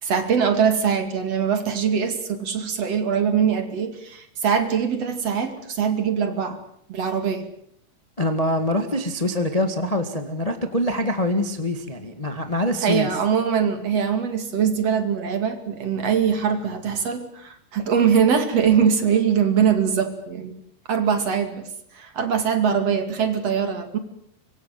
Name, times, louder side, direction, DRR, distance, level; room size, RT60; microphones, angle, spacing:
voice 1, 0.0-6.6 6.9-7.5 12.8-20.5 20.9-21.7 21.9-24.0, right 7 dB, 45° right, 8 dB, 3.3 m, -22 dB
voice 2, 8.2-13.1, left 1 dB, 30° left, 7 dB, 0.6 m, -24 dB
25.0 x 24.0 x 7.7 m, 0.68 s
omnidirectional pair, 4.4 m